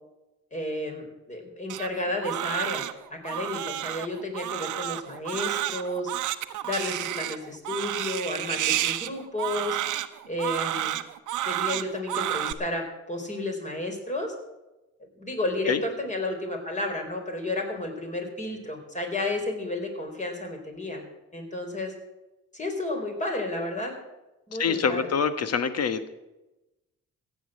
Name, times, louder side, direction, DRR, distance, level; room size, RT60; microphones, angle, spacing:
voice 1, 0.5-6.1 6.6-9.8 10.3-11.0 11.4-14.3 15.2-21.0 21.3-21.9 22.5-23.9 24.5-25.1, left 2 dB, 25° left, 3 dB, 4.3 m, -32 dB
Crying sobbing, 1.7-12.5, right 14 dB, 80° right, 0.9 m, -30 dB
voice 2, 24.6-26.1, left 6 dB, 55° left, 11 dB, 1.4 m, -25 dB
15.0 x 8.8 x 7.5 m, 1.0 s
cardioid pair, 90°, 30 cm